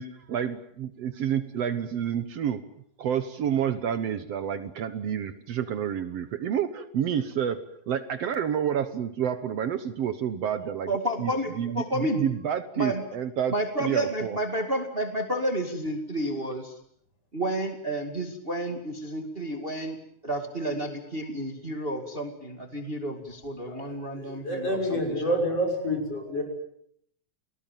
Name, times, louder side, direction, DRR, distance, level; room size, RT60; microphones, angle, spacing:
voice 1, 0.0-2.6 3.0-10.9 11.2-13.5 13.8-14.4, right 9 dB, 65° right, 12 dB, 2.1 m, -29 dB
voice 2, 10.9-12.2 12.8-13.0 13.5-16.7 17.3-20.0 20.2-25.3, right 1 dB, 20° right, 6 dB, 2.2 m, -31 dB
voice 3, 23.7-26.4, equal, 55° left, 2 dB, 7.0 m, -28 dB
29.5 x 19.0 x 9.1 m, 0.71 s
omnidirectional pair, 3.3 m